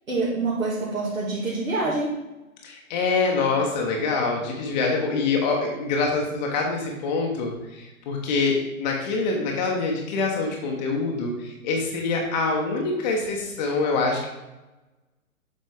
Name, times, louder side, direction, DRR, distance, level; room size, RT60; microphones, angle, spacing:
voice 1, 0.1-2.2, right 3 dB, 70° right, -7 dB, 2.0 m, -26 dB
voice 2, 2.6-14.3, left 3 dB, 30° left, 0 dB, 1.0 m, -25 dB
7.6 x 4.3 x 3.6 m, 1.0 s
figure-of-eight pair, 120°, 42 cm